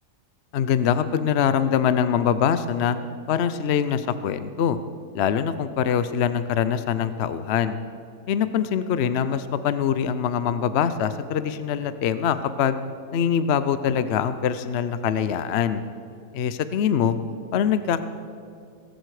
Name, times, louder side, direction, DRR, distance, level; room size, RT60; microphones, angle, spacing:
voice 1, 0.5-3.0 3.3-4.8 5.1-7.8 8.3-12.8 13.1-15.8 16.3-17.2 17.5-18.0, left 8 dB, 65° left, 12 dB, 0.6 m, -23 dB
17.5 x 14.5 x 4.8 m, 2.3 s
omnidirectional pair, 1.7 m